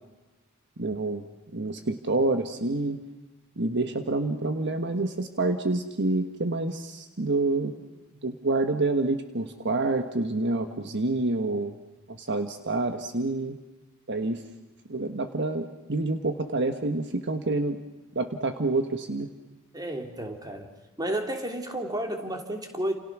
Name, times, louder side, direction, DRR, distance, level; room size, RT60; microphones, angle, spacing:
voice 1, 0.8-1.2 1.5-3.0 3.6-7.7 8.2-11.8 12.1-13.6 14.1-14.4 14.9-17.8 18.1-19.3, right 2 dB, 55° right, 7 dB, 1.5 m, -27 dB
voice 2, 19.7-20.7 21.0-22.9, right 1 dB, 20° right, 4 dB, 3.1 m, -31 dB
30.0 x 28.5 x 6.2 m, 1.1 s
head